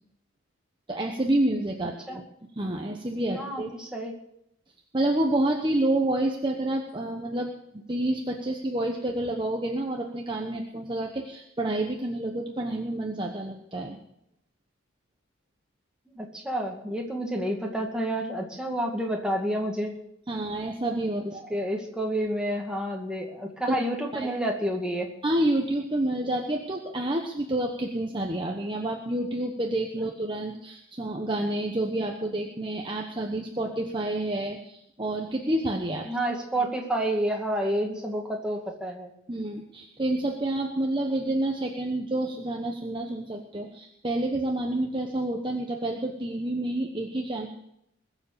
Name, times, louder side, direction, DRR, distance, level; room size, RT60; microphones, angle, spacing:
voice 1, 0.9-2.2 2.6-3.7 4.9-14.0 20.3-21.5 23.7-23.8 24.1-24.3 25.2-36.3 39.3-47.5, right 1 dB, 25° right, 1 dB, 1.1 m, -29 dB
voice 2, 3.4-4.1 16.1-20.0 21.5-25.1 36.1-39.1, right 1 dB, 5° right, 0 dB, 2.2 m, -29 dB
21.5 x 7.4 x 6.9 m, 0.77 s
head